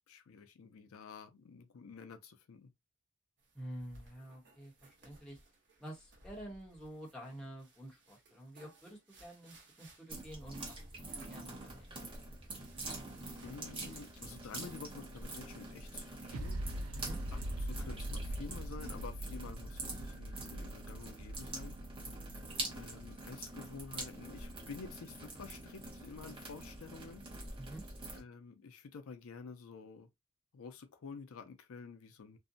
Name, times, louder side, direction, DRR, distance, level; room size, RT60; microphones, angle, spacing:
voice 1, 0.1-2.7 13.4-16.6 17.3-21.8 22.7-27.2 28.1-30.1 30.5-32.4, left 5 dB, 75° left, 0.4 m, -50 dB
sound 1, 3.4-16.5, right 2 dB, 55° right, 0.9 m, -62 dB
voice 2, 3.5-5.4 5.8-12.3 16.9-17.2 27.6-27.8, right 1 dB, 5° left, 0.9 m, -49 dB
sound 2, 10.1-28.2, right 2 dB, 25° right, 0.8 m, -46 dB
sound 3, 16.3-23.9, right 1 dB, 85° right, 0.4 m, -42 dB
2.6 x 2.1 x 2.5 m
head